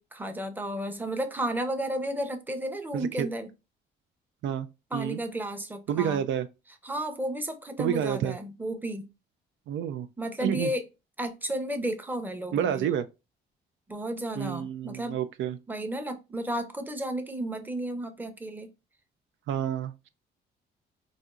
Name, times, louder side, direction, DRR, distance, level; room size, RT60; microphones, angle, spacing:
voice 1, 0.0-3.5 4.9-6.2 6.8-9.1 10.2-10.8 11.2-12.9 13.9-15.2 15.7-18.7, right 1 dB, 10° right, 0.7 m, -33 dB
voice 2, 2.9-3.3 4.4-4.7 4.9-5.2 5.9-6.5 7.8-8.4 9.7-10.1 10.4-10.7 12.5-13.0 14.4-15.6 19.5-19.9, right 9 dB, 75° right, 0.4 m, -29 dB
4.2 x 2.6 x 2.4 m
cardioid pair, 90°, 20 cm